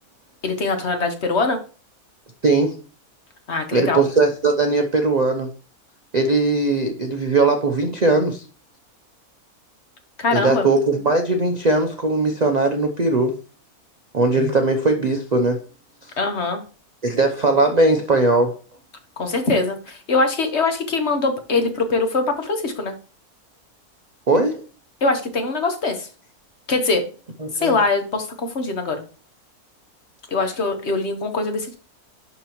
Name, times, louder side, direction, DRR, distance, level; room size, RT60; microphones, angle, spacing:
voice 1, 0.4-1.6 3.5-4.0 10.2-10.7 16.2-16.6 19.2-22.9 25.0-26.1 26.7-27.0 27.6-29.0 30.3-31.7, left 3 dB, 50° left, 6 dB, 1.3 m, -22 dB
voice 2, 2.4-2.8 3.7-5.5 6.1-8.4 10.3-13.4 14.1-15.6 17.0-18.6 24.3-24.6 27.4-27.8, right 3 dB, 45° right, 5 dB, 0.5 m, -19 dB
11.5 x 4.0 x 3.0 m, 0.36 s
omnidirectional pair, 1.6 m